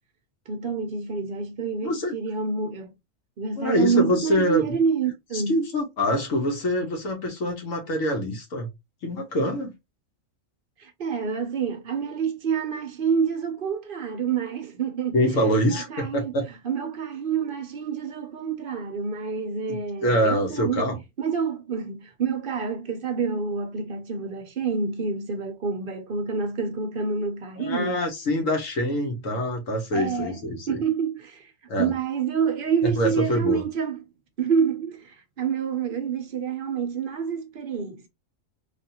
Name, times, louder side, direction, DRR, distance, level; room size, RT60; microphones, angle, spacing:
voice 1, 0.5-2.9 3.4-5.6 10.8-16.4 16.6-28.0 29.9-30.4 30.7-31.5 31.8-34.0 34.4-38.1, right 6 dB, 55° right, 0.7 m, -28 dB
voice 2, 1.8-2.1 3.6-4.6 5.3-8.7 9.0-9.7 15.1-16.5 19.7-21.0 27.6-30.8 31.7-31.9 32.8-33.6, equal, 85° left, 1.5 m, -25 dB
3.4 x 2.5 x 2.7 m
omnidirectional pair, 1.3 m